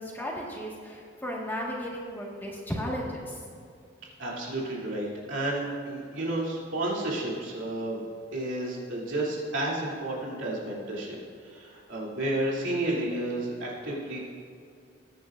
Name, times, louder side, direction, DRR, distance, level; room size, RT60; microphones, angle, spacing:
voice 1, 0.0-3.4, equal, 10° left, -3 dB, 1.7 m, -35 dB
voice 2, 4.2-8.0 8.3-14.2, right 1 dB, 85° right, -5 dB, 3.0 m, -31 dB
21.0 x 9.3 x 2.6 m, 2.3 s
head